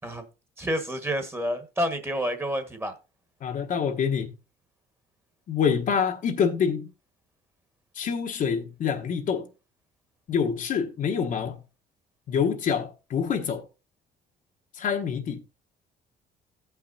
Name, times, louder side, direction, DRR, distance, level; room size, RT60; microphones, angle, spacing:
voice 1, 0.6-2.9, equal, 15° right, 1.4 m, -29 dB
voice 2, 3.4-4.3 5.5-6.9 7.9-9.5 10.3-11.6 12.3-13.7 14.8-15.4, left 7 dB, 50° left, 1.1 m, -26 dB
17.5 x 5.8 x 2.6 m
cardioid pair, 110°, 17 cm